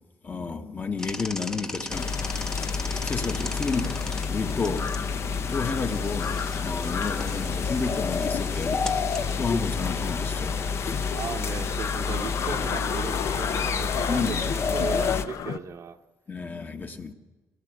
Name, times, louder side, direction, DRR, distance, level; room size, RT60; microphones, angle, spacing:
voice 1, 0.2-2.2 3.0-5.0 5.5-8.9 9.4-10.6 12.1-12.2 14.1-14.5 16.3-17.1, left 4 dB, 30° left, 1.4 m, -31 dB
sound 1, 1.0-11.4, left 1 dB, 10° left, 0.9 m, -40 dB
sound 2, 1.9-15.3, left 5 dB, 45° left, 1.0 m, -29 dB
sound 3, 2.4-15.6, left 9 dB, 70° left, 0.8 m, -37 dB
voice 2, 11.1-16.0, right 7 dB, 50° right, 1.0 m, -36 dB
24.0 x 17.5 x 8.2 m
cardioid pair, 130°, 6 cm